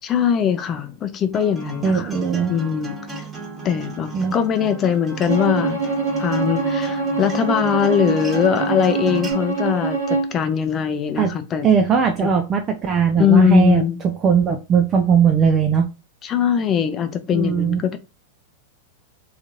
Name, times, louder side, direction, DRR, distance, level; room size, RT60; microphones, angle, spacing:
voice 1, 0.0-2.1 2.5-3.2 3.6-5.8 6.2-11.7 12.2-12.3 13.2-14.0 16.2-18.0, left 8 dB, 30° left, 0.4 m, -21 dB
Acoustic guitar, 1.3-9.3, right 3 dB, 15° right, 1.3 m, -35 dB
voice 2, 1.8-2.6 4.1-4.4 11.2-11.3 11.6-15.9 17.3-17.8, right 6 dB, 30° right, 0.4 m, -18 dB
Bowed string instrument, 5.3-10.4, right 4 dB, 85° right, 0.7 m, -24 dB
2.9 x 2.4 x 2.6 m
hypercardioid pair, 110°, 0 cm